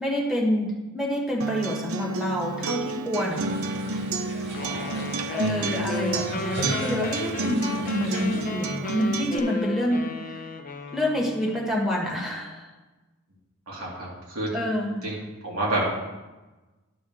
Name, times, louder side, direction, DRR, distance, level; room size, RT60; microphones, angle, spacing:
voice 1, 0.0-3.4 3.9-4.0 5.3-10.1 10.9-12.7 14.5-15.0, left 1 dB, ahead, -3 dB, 1.4 m, -27 dB
Acoustic guitar, 1.4-9.4, right 3 dB, 70° right, 0.5 m, -30 dB
sound 1, 3.3-8.4, right 1 dB, 50° right, 2.2 m, -37 dB
sound 2, 4.5-11.7, left 3 dB, 40° left, 0.8 m, -35 dB
voice 2, 4.6-5.3 13.7-14.5 15.0-15.9, right 1 dB, 85° right, -5 dB, 2.9 m, -30 dB
11.0 x 3.9 x 6.4 m, 1.1 s
head